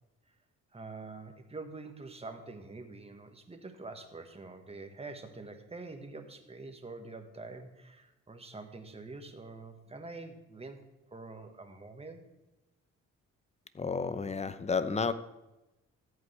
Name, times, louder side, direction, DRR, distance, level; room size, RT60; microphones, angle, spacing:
voice 1, 0.7-10.8 11.1-12.3, right 3 dB, 20° right, 5 dB, 1.5 m, -46 dB
voice 2, 13.7-15.1, left 5 dB, 20° left, 13 dB, 0.7 m, -31 dB
14.0 x 8.4 x 3.4 m, 0.99 s
cardioid pair, 90°, 30 cm